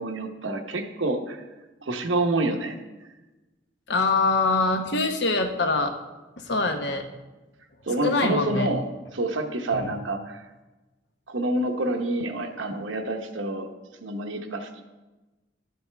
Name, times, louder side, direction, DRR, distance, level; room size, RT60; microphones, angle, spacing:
voice 1, 0.0-1.4 1.8-2.8 7.9-8.8 9.1-10.4 11.3-13.7 14.0-14.8, right 2 dB, 85° right, 5 dB, 0.9 m, -27 dB
voice 2, 3.9-5.9 6.5-7.1 8.0-8.7 9.7-9.9, left 3 dB, 60° left, 6 dB, 0.9 m, -24 dB
12.0 x 7.8 x 3.4 m, 1.1 s
head